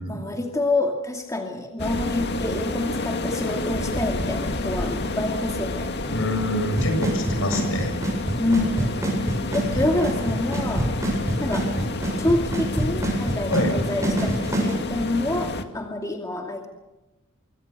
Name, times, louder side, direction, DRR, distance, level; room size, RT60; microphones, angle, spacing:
voice 1, 0.1-5.9 8.4-9.1 9.5-10.9 11.4-11.7 12.2-16.7, left 2 dB, 15° left, 2 dB, 2.5 m, -27 dB
sound 1, 1.8-15.6, left 2 dB, 55° left, 2.1 m, -29 dB
voice 2, 6.1-8.0 9.7-9.8 13.5-13.7, left 1 dB, 70° left, 6 dB, 7.1 m, -26 dB
Drum kit / Snare drum / Bass drum, 6.8-14.7, right 1 dB, 15° right, 7.9 m, -24 dB
25.5 x 24.5 x 6.7 m, 1.0 s
head